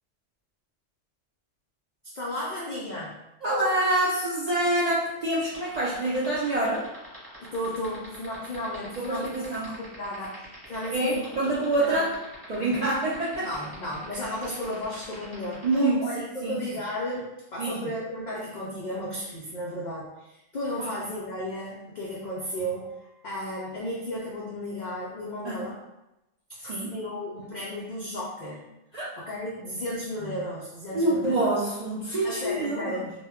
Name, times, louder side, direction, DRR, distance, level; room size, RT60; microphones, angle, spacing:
voice 1, 2.1-3.1 7.4-10.4 10.7-11.3 11.8-12.0 13.4-15.7 16.0-25.8 26.6-28.6 29.2-31.4 32.2-33.1, left 1 dB, 85° left, -4 dB, 0.4 m, -34 dB
voice 2, 3.4-6.8 9.0-9.7 10.9-12.1 12.5-13.5 15.6-16.5 17.6-17.9 20.8-20.9 25.4-25.5 26.7-26.9 28.9-29.1 30.9-33.1, right 1 dB, 65° right, -8 dB, 0.4 m, -26 dB
sound 1, 5.4-15.7, right 1 dB, 10° right, 0.9 m, -46 dB
2.1 x 2.1 x 3.4 m, 0.94 s
omnidirectional pair, 1.3 m